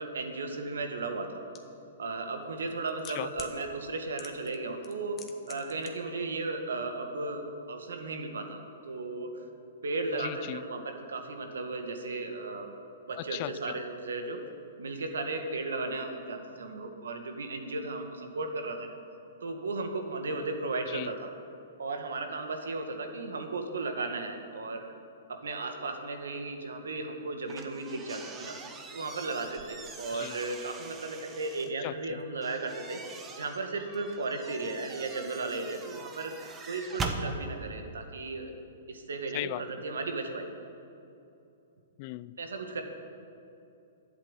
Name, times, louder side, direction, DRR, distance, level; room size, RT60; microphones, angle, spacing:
voice 1, 0.0-1.4 2.0-5.2 5.5-9.3 9.8-12.7 13.1-14.4 14.8-19.0 19.4-21.3 21.8-24.8 25.3-28.6 28.9-33.0 33.4-36.3 36.7-38.5 38.9-40.5 42.4-42.8, right 3 dB, 80° right, 4 dB, 1.8 m, -35 dB
sound 1, 1.5-1.6 2.6-3.5 4.2-4.6 4.8-5.9 6.2-6.3, left 8 dB, 25° left, 1.4 m, -45 dB
voice 2, 10.2-10.6 13.2-13.8 20.9-21.1 30.1-30.4 31.8-32.2 39.3-39.6 42.0-42.3, left 18 dB, 45° left, 18 dB, 0.4 m, -37 dB
sound 2, 27.5-31.7 32.4-37.2, right 4 dB, 20° right, 1.3 m, -42 dB
11.5 x 8.2 x 8.9 m, 2.8 s
hypercardioid pair, 125°, 0 cm